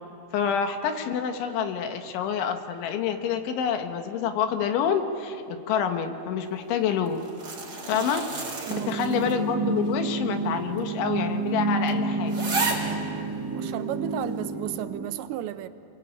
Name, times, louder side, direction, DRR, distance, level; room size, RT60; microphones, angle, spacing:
voice 1, 0.3-7.2 7.9-8.2 8.9-12.3, left 7 dB, 85° left, 6 dB, 3.9 m, -27 dB
sound 1, 7.1-9.5 9.9-10.0 10.8-10.9 11.3-11.4 11.9-12.0 12.3-13.0 13.7-13.8, right 3 dB, 35° right, 4.7 m, -32 dB
voice 2, 8.6-9.3 13.5-15.7, right 13 dB, 80° right, 11 dB, 3.0 m, -34 dB
sound 2, 8.7-15.1, right 3 dB, 60° right, 0.9 m, -29 dB
29.0 x 21.5 x 8.8 m, 2.8 s
omnidirectional pair, 5.3 m